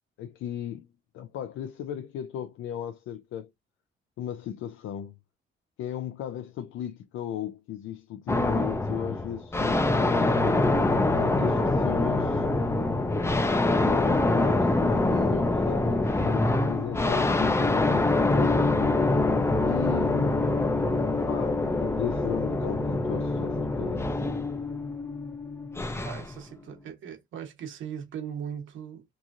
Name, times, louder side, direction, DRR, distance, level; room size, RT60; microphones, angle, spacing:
voice 1, 0.2-0.9 1.1-3.5 4.2-5.1 5.8-10.2 11.2-12.5 13.8-18.7 19.6-20.5 21.1-24.1, left 10 dB, 80° left, 0.5 m, -36 dB
sound 1, 8.3-26.3, left 2 dB, 15° left, 0.5 m, -25 dB
voice 2, 26.0-29.0, right 8 dB, 75° right, 1.1 m, -39 dB
2.9 x 2.5 x 2.5 m
cardioid pair, 90°, 20 cm